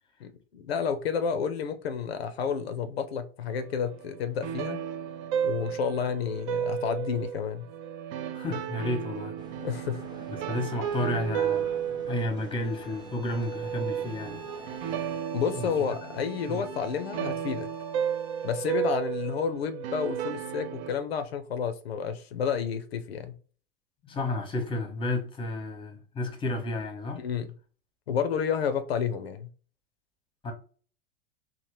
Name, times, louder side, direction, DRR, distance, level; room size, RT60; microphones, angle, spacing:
voice 1, 0.2-4.8 5.4-7.7 9.6-10.0 15.3-17.7 18.4-23.4 27.2-27.5 28.1-29.5, left 7 dB, 85° left, 0.5 m, -30 dB
sound 1, 3.5-20.9, right 9 dB, 50° right, 0.4 m, -34 dB
voice 2, 8.3-9.3 10.3-14.4 15.5-15.7 16.5-16.6 24.0-27.2 30.4-30.5, left 2 dB, 15° left, 0.8 m, -32 dB
sound 2, 9.4-15.2, right 1 dB, 15° right, 0.8 m, -49 dB
sound 3, 12.6-18.8, left 3 dB, 70° right, 0.9 m, -49 dB
2.8 x 2.0 x 3.1 m
hypercardioid pair, 90°, 30 cm